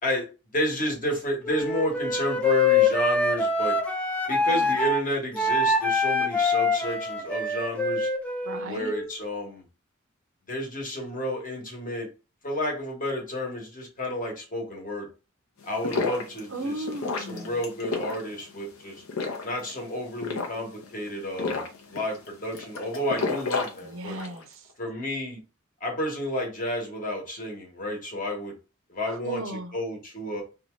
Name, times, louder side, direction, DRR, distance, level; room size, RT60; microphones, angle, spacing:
voice 1, 0.5-3.8 4.3-8.1 8.7-9.6 10.5-12.1 12.4-15.1 15.6-16.8 17.3-19.0 19.4-21.6 21.9-24.2 24.8-25.4 25.8-28.5 28.9-29.4 29.7-30.4, equal, 40° left, 0 dB, 1.0 m, -31 dB
Wind instrument woodwind instrument, 1.4-5.0 5.3-9.1, left 3 dB, 5° left, 0.4 m, -25 dB
voice 2, 8.4-8.9 16.5-17.6 23.8-24.7 29.1-29.8, right 2 dB, 70° right, 8 dB, 0.5 m, -36 dB
sound 1, 15.6-24.4, left 4 dB, 85° left, 0.7 m, -33 dB
2.7 x 2.3 x 3.0 m, 0.31 s
head